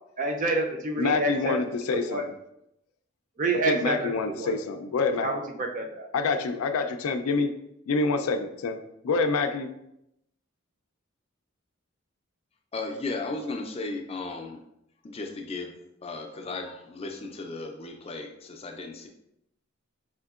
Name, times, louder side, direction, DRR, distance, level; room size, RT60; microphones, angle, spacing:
voice 1, 0.2-1.5 1.9-2.2 3.4-4.1 4.4-4.5 5.2-6.1, right 2 dB, 35° right, 3 dB, 0.4 m, -28 dB
voice 2, 1.0-2.2 3.7-5.3 6.1-7.5 7.9-8.8 9.0-9.7, left 4 dB, 85° left, 7 dB, 0.4 m, -26 dB
voice 3, 12.7-14.6 15.0-15.7 16.0-19.1, left 3 dB, 30° left, 4 dB, 0.4 m, -35 dB
4.9 x 3.6 x 2.4 m, 0.81 s
head